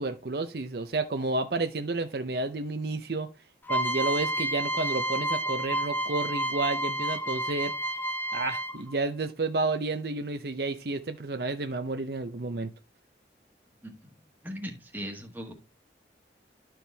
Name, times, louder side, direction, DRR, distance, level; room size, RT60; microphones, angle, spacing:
voice 1, 0.0-3.3 3.7-7.7 8.3-12.7, right 3 dB, 60° right, 0.6 m, -31 dB
sound 1, 3.7-8.9, right 1 dB, 10° left, 0.6 m, -30 dB
voice 2, 13.8-14.1 14.4-15.5, equal, 10° right, 1.3 m, -39 dB
11.5 x 4.6 x 3.4 m
head